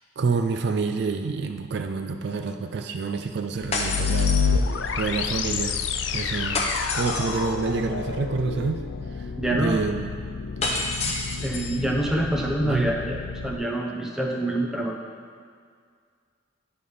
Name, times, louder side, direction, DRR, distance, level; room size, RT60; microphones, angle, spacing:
voice 1, 0.2-4.4 5.0-5.8 6.1-6.7 6.9-8.8 9.1-10.1 11.0-11.2 12.6-13.0, right 4 dB, 60° right, 6 dB, 0.4 m, -28 dB
sound 1, 3.6-13.6, left 5 dB, 75° left, 0.4 m, -29 dB
sound 2, 3.7-5.0 6.5-7.5 10.6-11.8, left 3 dB, 35° left, 0.7 m, -29 dB
voice 2, 9.4-9.9 11.4-14.9, right 1 dB, 5° right, -1 dB, 0.7 m, -26 dB
9.4 x 3.4 x 5.4 m, 2.1 s
head